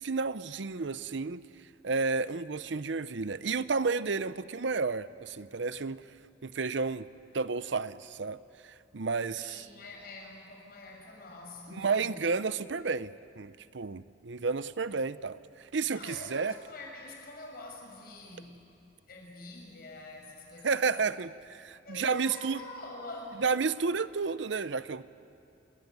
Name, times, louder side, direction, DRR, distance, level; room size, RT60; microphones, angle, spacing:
voice 1, 0.0-1.4 1.8-6.0 6.4-7.1 7.3-9.7 11.7-16.5 20.6-22.6 23.4-25.0, right 4 dB, 70° right, 15 dB, 0.7 m, -31 dB
voice 2, 9.3-12.1 15.9-18.6 19.1-20.9 21.8-23.4, left 2 dB, 50° left, 1 dB, 6.4 m, -45 dB
29.0 x 21.5 x 9.5 m, 2.7 s
head